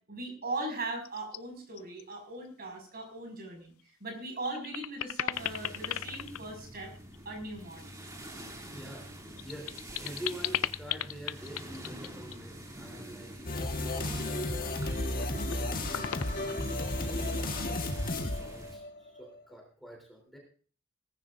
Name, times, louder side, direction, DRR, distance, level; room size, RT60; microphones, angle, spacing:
voice 1, 0.1-3.7 4.0-6.9 7.2-7.9, right 2 dB, 45° right, 2 dB, 6.0 m, -39 dB
sound 1, 1.0-1.4 1.8-2.1 2.5-2.6 3.8-3.9 4.3-7.3 8.9-12.4 14.3-14.9 15.2-15.6 15.9-17.0, left 11 dB, 80° left, 0.5 m, -37 dB
sound 2, 5.3-18.8, right 1 dB, 15° right, 2.8 m, -46 dB
voice 2, 8.4-9.1 9.4-9.7 10.0-20.4, right 1 dB, ahead, 0 dB, 3.5 m, -47 dB
sound 3, 13.5-19.2, left 2 dB, 40° left, 1.6 m, -33 dB
18.5 x 15.5 x 2.6 m, 0.42 s
head